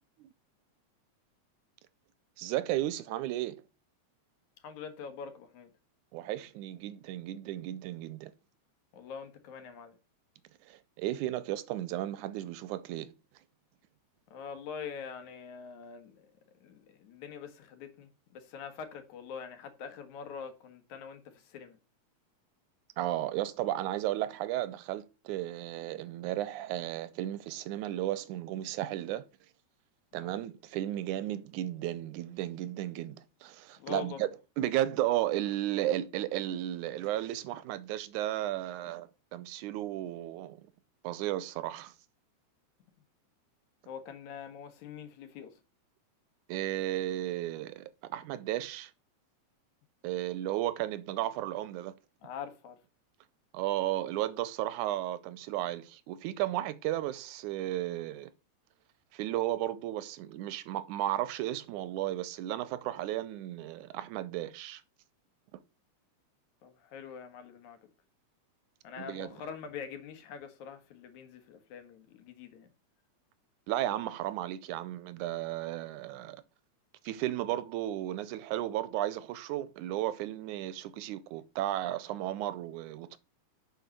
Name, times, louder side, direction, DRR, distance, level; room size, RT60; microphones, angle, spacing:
voice 1, 2.4-3.6 6.1-8.3 10.6-13.1 23.0-29.3 30.1-34.3 34.6-40.7 41.0-41.9 46.5-48.9 50.0-51.9 53.5-58.3 59.1-64.8 65.5-65.6 69.0-69.3 73.7-76.4 77.0-83.2, right 14 dB, 90° right, 2.2 m, -34 dB
voice 2, 4.6-5.7 8.9-10.0 14.3-16.3 16.6-21.8 30.1-30.4 33.8-34.2 43.9-45.6 52.2-52.8 66.6-67.8 68.8-72.7, left 7 dB, 75° left, 2.7 m, -44 dB
7.7 x 5.0 x 6.6 m
omnidirectional pair, 3.4 m